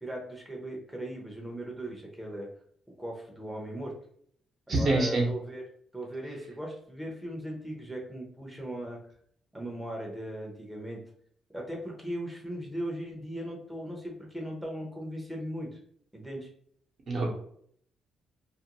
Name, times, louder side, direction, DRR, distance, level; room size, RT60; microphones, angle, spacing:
voice 1, 0.0-2.5 3.0-3.9 4.7-5.6 5.9-9.0 9.5-11.0 11.5-15.8 16.1-16.5, right 1 dB, 5° right, -1 dB, 0.7 m, -38 dB
voice 2, 4.7-5.3 17.1-17.3, right 2 dB, 55° right, -1 dB, 0.9 m, -25 dB
2.5 x 2.2 x 2.8 m, 0.63 s
cardioid pair, 90°, 0 cm